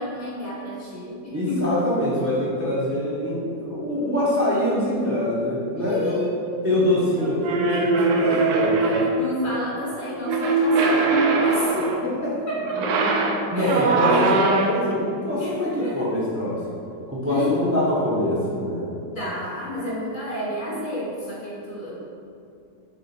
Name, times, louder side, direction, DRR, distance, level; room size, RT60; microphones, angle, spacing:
voice 1, 0.0-1.7 5.8-6.8 7.2-7.3 7.9-8.4 8.8-12.0 12.5-13.0 13.5-14.1 15.3-16.1 17.2-17.7 19.1-22.0, left 1 dB, 30° left, -7 dB, 1.4 m, -30 dB
voice 2, 1.3-6.2 6.6-9.1 12.0-12.3 12.7-12.8 13.5-16.6 17.1-18.9, left 1 dB, 15° right, -8 dB, 0.5 m, -24 dB
sound 1, 7.4-9.3 10.3-12.1 12.7-14.9, right 3 dB, 70° right, 1.0 m, -21 dB
6.6 x 3.5 x 4.3 m, 2.5 s
omnidirectional pair, 2.0 m